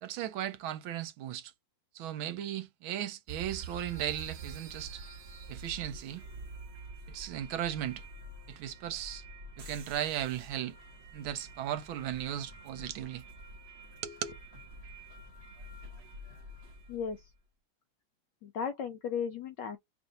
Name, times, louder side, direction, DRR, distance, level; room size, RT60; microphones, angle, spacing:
voice 1, 0.0-1.5 1.9-5.0 5.5-6.2 7.1-8.0 8.5-9.2 9.6-10.7 11.1-13.2 14.0-14.3, right 11 dB, 75° right, 1.4 m, -36 dB
sound 1, 3.3-17.2, right 3 dB, 40° right, 1.1 m, -47 dB
voice 2, 16.9-17.3 18.4-19.8, left 6 dB, 75° left, 1.0 m, -35 dB
3.4 x 2.6 x 4.0 m
omnidirectional pair, 2.4 m